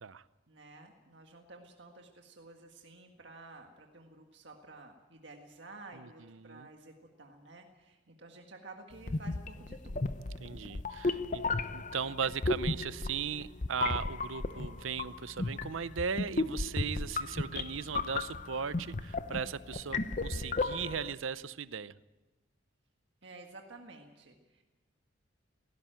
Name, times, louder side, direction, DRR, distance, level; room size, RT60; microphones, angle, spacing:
voice 1, 0.5-10.2 23.2-24.6, right 2 dB, 60° right, 2 dB, 1.8 m, -52 dB
sound 1, 9.0-21.1, left 3 dB, 35° left, 0.7 m, -35 dB
voice 2, 10.4-11.4 11.7-21.9, right 6 dB, 75° right, 16 dB, 0.6 m, -37 dB
17.5 x 16.5 x 9.1 m, 1.1 s
head